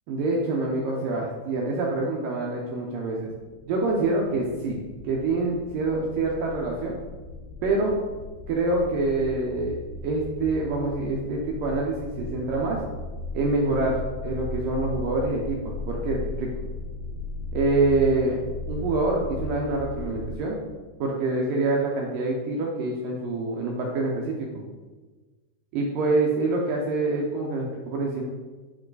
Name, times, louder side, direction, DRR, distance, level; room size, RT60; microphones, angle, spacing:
voice 1, 0.1-3.3 3.7-6.9 7.6-8.0 8.5-12.8 13.3-14.0 14.2-16.5 17.5-18.4 18.7-20.6 21.0-24.6 25.7-28.2, right 2 dB, 75° right, -2 dB, 2.0 m, -26 dB
sound 1, 3.4-20.4, left 2 dB, 80° left, 2.8 m, -37 dB
8.9 x 5.8 x 4.0 m, 1.3 s
omnidirectional pair, 5.0 m